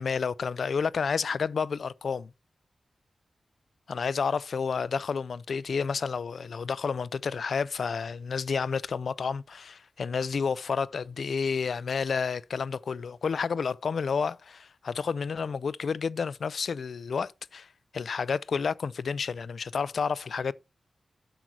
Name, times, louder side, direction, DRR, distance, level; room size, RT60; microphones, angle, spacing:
voice 1, 0.0-2.3 3.9-17.7 17.9-20.5, left 5 dB, 70° left, 0.4 m, -30 dB
8.0 x 6.2 x 4.6 m
wide cardioid pair, 155°, 0 cm